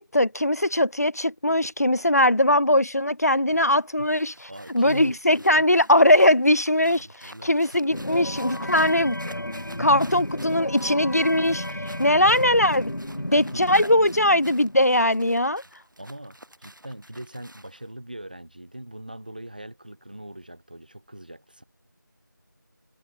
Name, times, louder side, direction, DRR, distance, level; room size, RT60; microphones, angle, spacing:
voice 1, 0.0-4.5 4.7-11.6 12.0-12.9 13.3-15.6, left 1 dB, 50° left, 0.8 m, -20 dB
sound 1, 3.8-17.9, right 1 dB, 70° right, 3.9 m, -50 dB
voice 2, 4.5-5.2 5.6-5.7 7.0-7.6 8.1-8.2 12.1-12.5 13.2-14.1 16.0-21.6, right 1 dB, 25° right, 5.4 m, -41 dB
sound 2, 7.9-15.0, left 1 dB, 75° left, 2.7 m, -33 dB
figure-of-eight pair, 180°, 11 cm